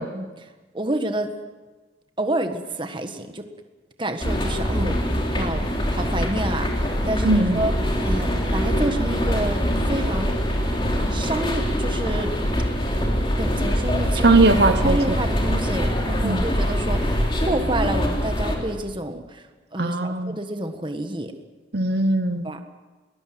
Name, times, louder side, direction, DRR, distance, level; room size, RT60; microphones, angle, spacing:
voice 1, 0.1-1.3 2.2-3.5 4.0-5.1 5.3-5.6 5.9-10.4 11.1-12.3 13.4-14.3 14.8-19.4 19.7-21.3 22.4-22.6, right 1 dB, 25° right, 7 dB, 1.5 m, -29 dB
sound 1, 4.2-18.6, equal, 25° left, 3.3 m, -23 dB
voice 2, 7.2-7.6 14.2-15.0 16.2-16.4 19.8-20.4 21.7-22.6, right 2 dB, 60° right, 8 dB, 0.9 m, -19 dB
22.5 x 19.5 x 7.8 m, 1.3 s
head